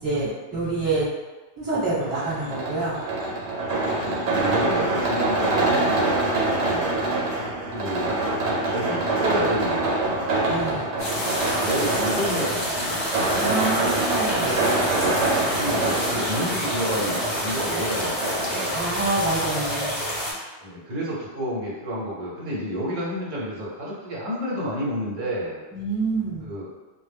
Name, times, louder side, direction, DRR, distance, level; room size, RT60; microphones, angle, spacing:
voice 1, 0.0-1.1 1.6-3.0 10.5-10.9 13.3-14.7 18.7-20.0 25.7-26.5, right 3 dB, 20° right, -12 dB, 1.1 m, -27 dB
sound 1, 2.0-18.6, right 2 dB, 85° right, 0.9 m, -25 dB
voice 2, 3.8-5.7 6.6-6.9 7.7-8.2 8.7-10.4 11.2-13.0 15.2-18.8 20.6-25.6 26.4-26.7, equal, 50° right, -6 dB, 0.8 m, -30 dB
sound 2, 11.0-20.3, equal, 35° left, 0.6 m, -28 dB
2.1 x 2.0 x 3.3 m, 1.2 s
omnidirectional pair, 1.1 m